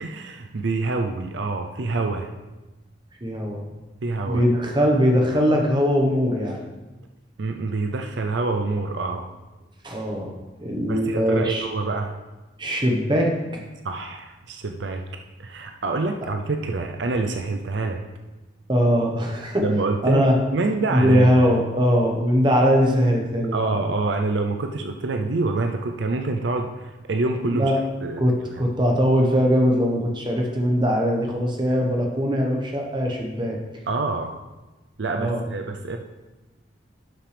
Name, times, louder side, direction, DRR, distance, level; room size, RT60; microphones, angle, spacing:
voice 1, 0.0-2.3 4.0-4.4 7.4-9.3 10.9-12.1 13.8-15.1 15.4-18.0 19.6-20.3 20.5-21.4 23.5-27.7 28.0-28.2 33.9-34.3 35.0-36.0, right 3 dB, 70° right, 5 dB, 0.5 m, -26 dB
voice 2, 3.2-3.6 4.3-6.6 9.8-11.6 12.6-13.3 18.7-19.6 20.0-20.3 20.9-23.8 27.5-27.8 28.2-33.6 35.1-35.4, equal, 25° right, 0 dB, 1.2 m, -21 dB
11.5 x 5.9 x 3.4 m, 1.1 s
head